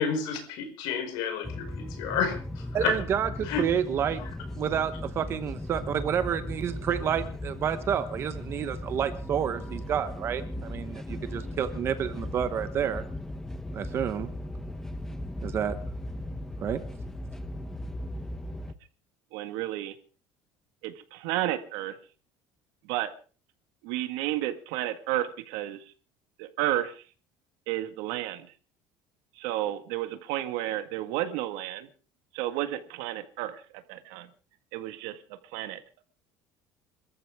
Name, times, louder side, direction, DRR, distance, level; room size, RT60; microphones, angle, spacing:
voice 1, 0.0-3.0 3.4-3.7, left 6 dB, 70° left, 4 dB, 5.6 m, -30 dB
sound 1, 1.4-18.7, left 1 dB, 5° left, 0.9 m, -37 dB
voice 2, 2.7-4.2 4.6-13.0 13.7-14.3 15.4-15.7 16.6-16.8, right 8 dB, 35° right, 11 dB, 1.0 m, -29 dB
voice 3, 19.3-19.9 20.8-22.0 22.9-23.1 23.8-25.9 26.4-27.0 27.7-28.5 29.4-31.9 32.3-34.3 34.7-35.2 35.5-36.0, right 14 dB, 85° right, 9 dB, 1.8 m, -32 dB
26.5 x 14.0 x 3.6 m, 0.38 s
cardioid pair, 165°, 8 cm